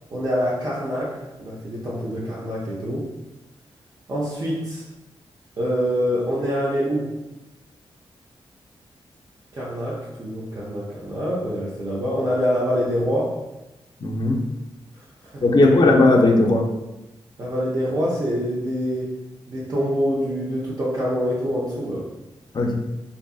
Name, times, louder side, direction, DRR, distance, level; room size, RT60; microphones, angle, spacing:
voice 1, 0.1-3.1 4.1-4.8 5.6-7.1 9.5-13.4 15.3-15.6 17.4-19.2 19.5-22.1, equal, 40° right, -7 dB, 0.6 m, -25 dB
voice 2, 14.0-14.4 15.4-16.7 22.5-22.7, left 2 dB, 45° left, 2 dB, 0.4 m, -16 dB
2.6 x 2.5 x 2.3 m, 1.0 s
cardioid pair, 70°, 10 cm